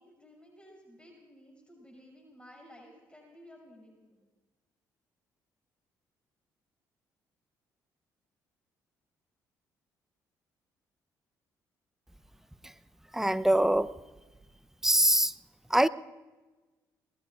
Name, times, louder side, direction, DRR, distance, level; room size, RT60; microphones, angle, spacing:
voice 1, 0.0-4.3, equal, 10° left, -1 dB, 6.3 m, -55 dB
voice 2, 13.1-13.9 14.8-15.4 15.7-15.9, right 1 dB, 5° right, 14 dB, 0.7 m, -24 dB
28.0 x 20.5 x 2.5 m, 1.2 s
hypercardioid pair, 55°, 9 cm